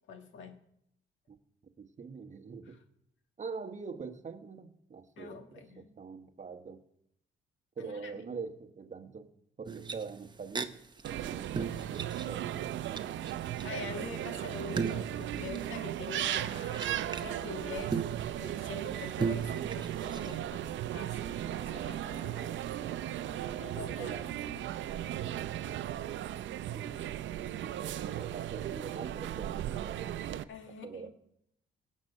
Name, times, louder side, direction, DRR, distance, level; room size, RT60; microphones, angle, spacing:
voice 1, 0.1-0.6 2.6-2.8 5.2-5.9 7.8-8.2 13.6-18.1 18.4-22.7 23.6-24.8 27.7-28.3 30.5-31.1, left 5 dB, 75° left, 6 dB, 1.6 m, -46 dB
voice 2, 1.8-2.8 3.4-6.8 7.8-9.3 9.6-10.8 11.1-13.3 23.7-24.3 26.7-27.1 27.4-30.4 30.8-31.1, right 5 dB, 35° right, 7 dB, 1.3 m, -44 dB
sound 1, 9.6-10.6 11.0-11.1 11.4-13.0 13.3-17.3 17.9-20.4, right 5 dB, 20° right, 0.9 m, -38 dB
sound 2, 11.0-30.4, right 12 dB, 70° right, 0.6 m, -36 dB
18.0 x 7.5 x 5.5 m, 0.77 s
cardioid pair, 90°, 20 cm